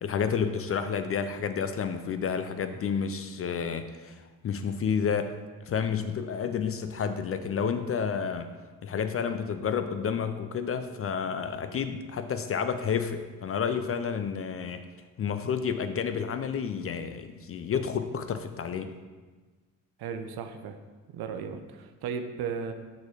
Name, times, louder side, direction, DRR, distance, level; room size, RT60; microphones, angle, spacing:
voice 1, 0.0-8.5 8.8-14.9 15.2-18.9, left 6 dB, 35° left, 9 dB, 0.4 m, -30 dB
voice 2, 20.0-20.8 21.1-22.7, right 6 dB, 60° right, 7 dB, 0.7 m, -35 dB
6.1 x 4.1 x 4.7 m, 1.4 s
hypercardioid pair, 45°, 44 cm